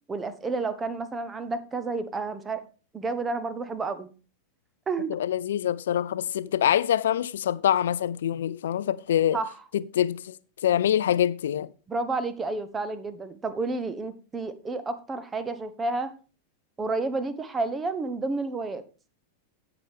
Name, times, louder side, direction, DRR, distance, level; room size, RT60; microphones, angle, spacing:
voice 1, 0.1-2.6 2.9-4.1 4.9-5.1 9.3-9.6 11.9-16.1 16.8-18.8, right 3 dB, 15° right, 1.1 m, -30 dB
voice 2, 5.1-9.4 9.7-10.4 10.6-11.7, left 10 dB, 60° left, 0.5 m, -25 dB
16.5 x 5.9 x 3.5 m
figure-of-eight pair, 90°, 0 cm